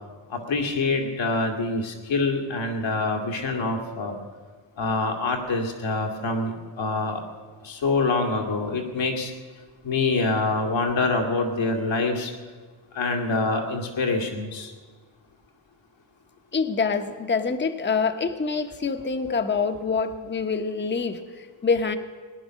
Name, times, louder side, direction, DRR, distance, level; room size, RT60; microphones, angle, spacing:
voice 1, 0.3-4.1 4.8-7.2 7.6-9.3 9.8-12.3 12.9-14.7, left 3 dB, 80° left, 2 dB, 2.3 m, -25 dB
voice 2, 16.5-22.0, left 5 dB, 25° left, 7 dB, 1.0 m, -26 dB
19.0 x 10.5 x 6.3 m, 1.5 s
cardioid pair, 90°, 45 cm